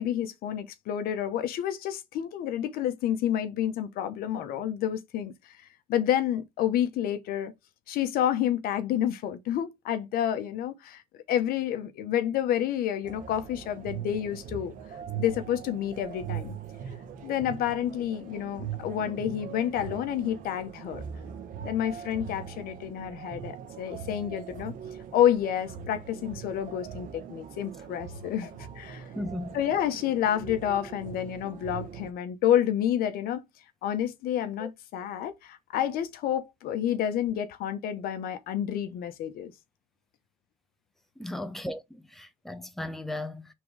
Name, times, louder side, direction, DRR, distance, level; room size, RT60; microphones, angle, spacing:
voice 1, 0.0-5.6 5.9-7.5 7.9-11.0 11.3-14.7 15.2-16.5 17.2-21.0 21.6-24.7 25.1-29.1 29.5-33.4 33.8-39.5, left 10 dB, 75° left, 1.0 m, -29 dB
sound 1, 13.0-32.1, right 8 dB, 65° right, 1.6 m, -41 dB
voice 2, 29.1-29.6 34.6-34.7 41.2-43.5, left 1 dB, ahead, 1.2 m, -36 dB
5.9 x 3.7 x 4.7 m
cardioid pair, 105°, 15 cm